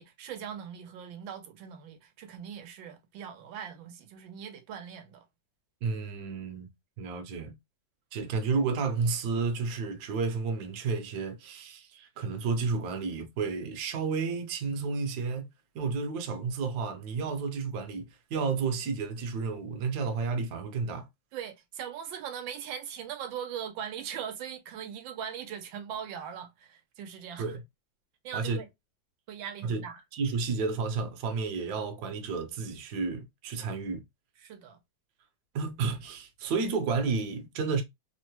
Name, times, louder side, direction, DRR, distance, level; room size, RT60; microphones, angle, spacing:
voice 1, 0.0-5.2 21.3-27.6 28.2-28.7 29.3-30.0 34.4-34.8, right 8 dB, 85° right, 1.4 m, -40 dB
voice 2, 5.8-6.7 7.0-7.5 8.1-15.4 15.7-21.1 27.4-27.6 28.3-28.6 29.6-29.8 30.1-34.0 35.5-37.8, right 4 dB, 65° right, 1.1 m, -31 dB
3.5 x 2.0 x 2.8 m
omnidirectional pair, 2.1 m